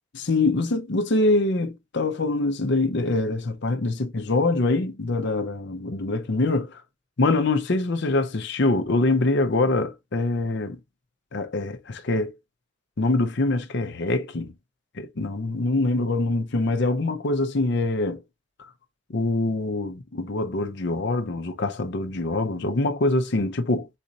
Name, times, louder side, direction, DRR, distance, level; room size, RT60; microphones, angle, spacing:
voice 1, 0.1-6.8 7.2-10.8 11.3-12.4 13.0-14.5 15.0-18.2 19.1-23.9, left 2 dB, 60° left, 0.7 m, -24 dB
4.2 x 2.6 x 4.0 m
head